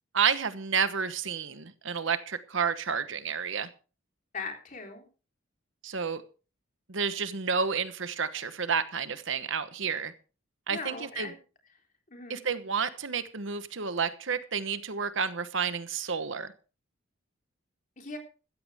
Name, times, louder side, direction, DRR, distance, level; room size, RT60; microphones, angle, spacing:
voice 1, 0.1-3.7 5.8-6.2 6.9-10.1 10.7-11.3 12.3-16.5, right 6 dB, 60° right, 12 dB, 1.1 m, -30 dB
voice 2, 4.3-5.0 10.7-11.3 12.1-12.4 18.0-18.2, left 4 dB, 40° left, 3 dB, 3.6 m, -39 dB
15.5 x 13.5 x 3.6 m, 0.35 s
head